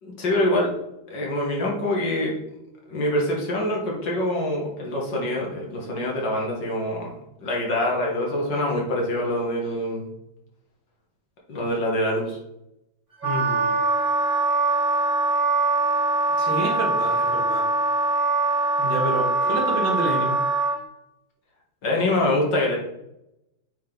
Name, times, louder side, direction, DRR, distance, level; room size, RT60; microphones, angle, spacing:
voice 1, 0.0-0.7 1.1-2.3 2.9-10.0 11.5-12.4 21.8-22.8, left 1 dB, 60° left, -2 dB, 2.4 m, -25 dB
Wind instrument woodwind instrument, 13.2-20.8, right 3 dB, 15° right, 1.7 m, -22 dB
voice 2, 13.2-13.8 16.4-17.6 18.8-20.4, right 2 dB, 70° right, -2 dB, 2.4 m, -28 dB
8.5 x 4.0 x 4.0 m, 0.86 s
omnidirectional pair, 2.2 m